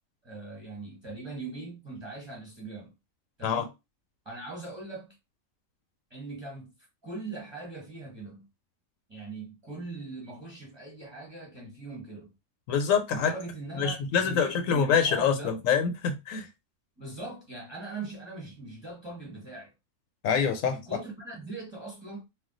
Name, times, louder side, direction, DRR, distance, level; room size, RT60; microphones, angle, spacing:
voice 1, 0.2-2.9 3.4-3.7 4.2-5.2 6.1-6.7 7.0-8.4 9.1-12.3 13.1-15.6 17.0-19.7 20.6-22.2, right 2 dB, 20° right, 1.0 m, -40 dB
voice 2, 12.7-13.3 13.8-16.5 20.2-20.8, left 6 dB, 75° left, 1.0 m, -25 dB
2.3 x 2.3 x 3.7 m
omnidirectional pair, 1.4 m